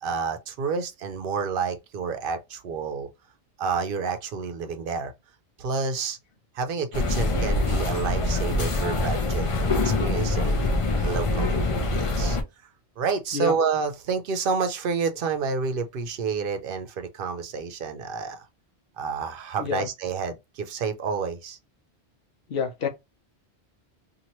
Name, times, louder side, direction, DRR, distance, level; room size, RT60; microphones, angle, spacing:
voice 1, 0.0-3.1 3.6-5.1 5.6-6.2 6.5-10.6 11.0-12.4 13.0-18.5 19.0-21.6, right 5 dB, 60° right, 0.7 m, -29 dB
sound 1, 6.9-12.4, left 2 dB, 45° left, 0.4 m, -24 dB
voice 2, 19.6-19.9 22.5-22.9, left 6 dB, 65° left, 0.9 m, -28 dB
2.8 x 2.5 x 2.9 m
omnidirectional pair, 1.1 m